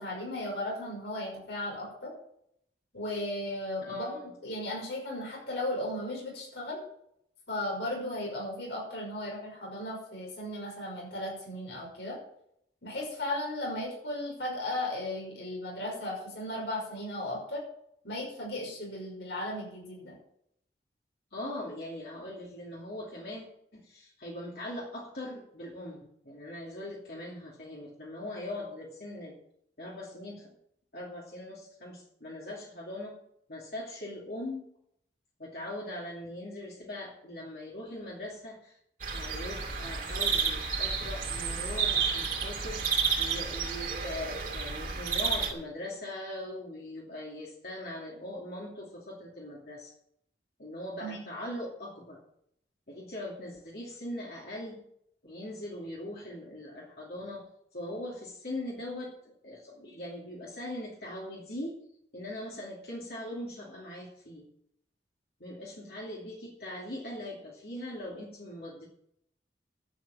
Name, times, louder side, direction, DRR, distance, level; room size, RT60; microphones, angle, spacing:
voice 1, 0.0-2.1 2.9-4.1 4.4-6.8 7.5-12.2 12.8-17.6 18.0-20.2 51.0-51.2, left 1 dB, 85° left, -2 dB, 5.8 m, -36 dB
voice 2, 3.8-4.2 21.3-23.4 23.7-29.4 29.8-30.5 30.9-33.1 33.5-34.7 35.4-38.8 39.1-49.9 50.6-52.2 52.9-54.8 55.2-57.4 57.7-61.8 62.1-64.5 65.4-68.9, left 1 dB, 60° left, -4 dB, 2.7 m, -41 dB
sound 1, 39.0-45.5, right 5 dB, 50° right, 2.5 m, -31 dB
12.0 x 7.9 x 7.6 m, 0.73 s
head